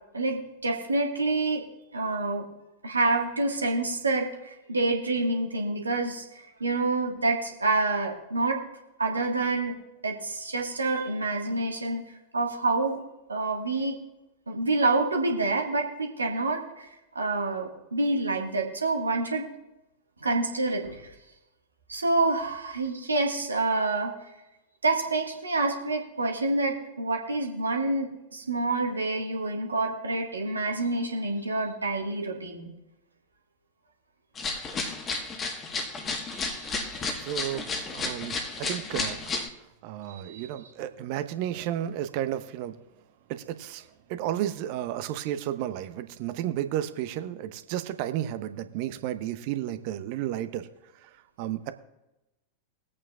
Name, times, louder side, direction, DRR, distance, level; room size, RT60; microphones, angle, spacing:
voice 1, 0.1-1.6 1.9-2.5 2.8-8.6 9.0-9.8 10.0-12.0 12.3-13.0 13.3-14.0 14.5-16.9 17.2-19.5 20.2-21.1 21.9-24.1 24.8-32.7 36.3-37.1 40.1-40.5, right 2 dB, 80° right, 1 dB, 1.6 m, -27 dB
sound 1, 34.3-39.5, left 3 dB, 25° left, 1.4 m, -32 dB
voice 2, 37.1-39.3 39.8-42.8 43.3-50.7 51.0-51.1 51.4-51.7, right 12 dB, 45° right, 12 dB, 0.8 m, -32 dB
22.0 x 8.6 x 2.4 m, 0.96 s
figure-of-eight pair, 90°, 0 cm